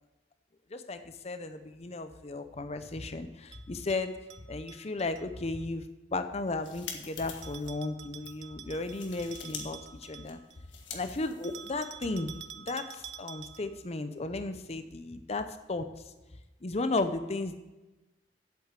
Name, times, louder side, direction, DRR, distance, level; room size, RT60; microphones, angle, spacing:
voice 1, 0.7-4.1 4.5-5.8 6.1-10.4 10.9-15.9 16.6-17.5, left 2 dB, 35° left, 9 dB, 0.6 m, -35 dB
Bell, 3.5-5.2 7.4-10.7 11.4-13.8, right 9 dB, 70° right, 0.6 m, -48 dB
sound 1, 6.4-7.7 8.2-8.3 8.7-9.6 9.9-11.9, left 6 dB, 80° left, 1.6 m, -45 dB
8.2 x 7.8 x 8.2 m, 1.1 s
head